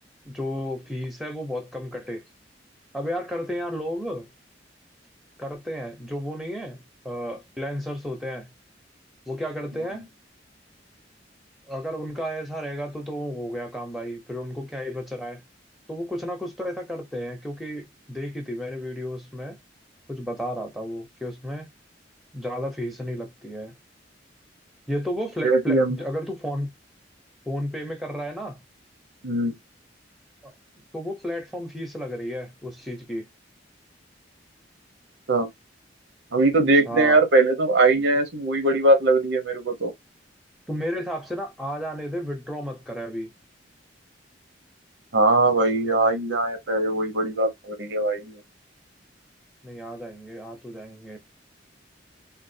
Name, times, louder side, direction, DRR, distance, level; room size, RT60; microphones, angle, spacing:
voice 1, 0.2-2.2 2.9-4.3 5.4-8.5 9.3-10.1 11.7-15.4 15.9-19.6 20.1-21.7 22.3-23.7 24.9-26.7 27.5-28.6 30.4-30.5 30.9-33.3 36.9-37.2 40.7-43.3 49.6-51.2, equal, ahead, 0.8 m, -32 dB
voice 2, 25.4-26.0 29.2-29.6 35.3-35.5 36.3-39.9 45.1-48.4, right 2 dB, 75° right, 1.0 m, -21 dB
3.7 x 2.4 x 2.7 m
head